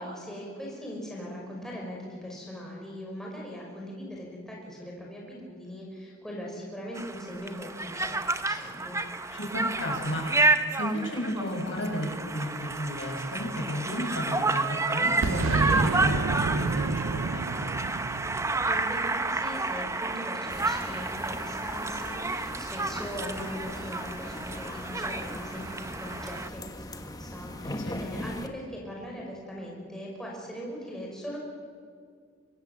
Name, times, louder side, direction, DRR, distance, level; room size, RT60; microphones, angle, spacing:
voice 1, 0.0-9.0 18.7-31.4, equal, 5° left, -3 dB, 5.4 m, -40 dB
Conversation, 7.0-26.5, right 3 dB, 15° right, 0.9 m, -30 dB
voice 2, 9.3-17.7 27.6-28.0, equal, 70° left, 0 dB, 6.6 m, -33 dB
Boom, 15.2-19.9, right 4 dB, 80° right, 0.5 m, -30 dB
sound 1, 20.5-28.5, left 1 dB, 20° left, 1.3 m, -40 dB
25.0 x 21.0 x 7.3 m, 2.1 s
head